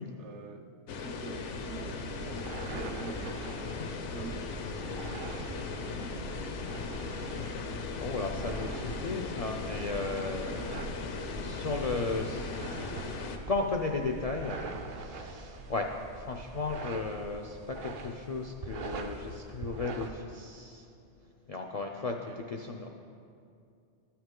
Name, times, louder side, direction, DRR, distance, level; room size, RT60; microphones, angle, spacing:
voice 1, 0.2-5.4 5.9-7.2 22.3-22.4, right 4 dB, 75° right, 5 dB, 1.0 m, -48 dB
sound 1, 0.9-13.4, left 4 dB, 80° left, 1.0 m, -38 dB
sound 2, 1.5-20.1, right 3 dB, 55° right, 0.7 m, -43 dB
voice 2, 7.5-12.6 13.5-20.9 21.5-22.9, left 3 dB, 60° left, 2 dB, 0.4 m, -35 dB
13.0 x 5.8 x 3.7 m, 2.5 s
omnidirectional pair, 1.2 m